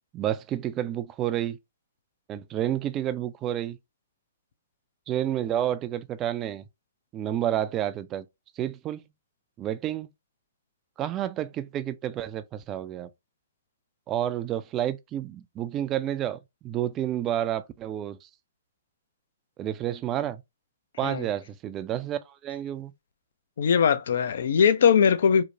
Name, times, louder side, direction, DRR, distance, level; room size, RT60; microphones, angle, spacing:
voice 1, 0.1-1.6 2.3-3.8 5.1-6.6 7.1-8.3 8.6-9.0 9.6-10.1 11.0-13.1 14.1-18.3 19.6-20.4 21.0-22.9, right 11 dB, 25° right, 0.3 m, -30 dB
voice 2, 23.6-25.4, left 7 dB, 65° left, 0.4 m, -20 dB
3.0 x 2.1 x 2.6 m
hypercardioid pair, 125°, 0 cm